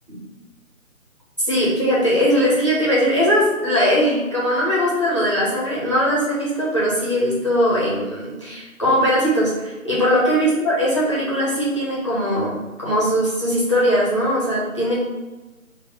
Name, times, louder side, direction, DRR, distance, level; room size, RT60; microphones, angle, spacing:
voice 1, 1.5-14.9, equal, 20° left, -8 dB, 0.6 m, -20 dB
3.5 x 2.0 x 3.8 m, 1.2 s
figure-of-eight pair, 155°, 42 cm